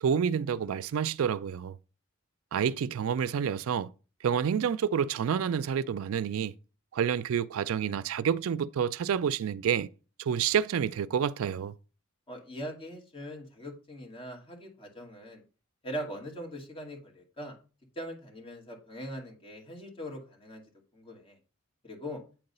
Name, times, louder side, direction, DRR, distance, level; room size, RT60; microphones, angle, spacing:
voice 1, 0.0-1.8 2.5-3.9 4.2-6.5 6.9-9.9 10.2-11.7, right 7 dB, 80° right, 0.4 m, -28 dB
voice 2, 12.3-15.4 15.8-17.5 18.0-20.6 20.9-21.4 21.8-22.2, equal, 25° left, 2.2 m, -41 dB
8.9 x 3.9 x 5.4 m
head